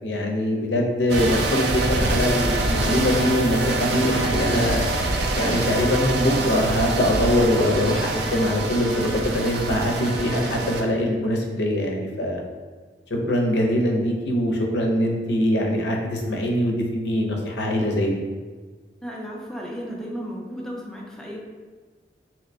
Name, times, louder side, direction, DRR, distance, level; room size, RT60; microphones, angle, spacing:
voice 1, 0.0-4.9 5.3-12.4 13.3-18.2, equal, 80° left, 1 dB, 0.6 m, -23 dB
sound 1, 1.1-10.8, right 2 dB, 65° right, 0.4 m, -25 dB
voice 2, 19.0-21.4, equal, 5° left, -3 dB, 0.4 m, -34 dB
2.8 x 2.6 x 3.2 m, 1.4 s
head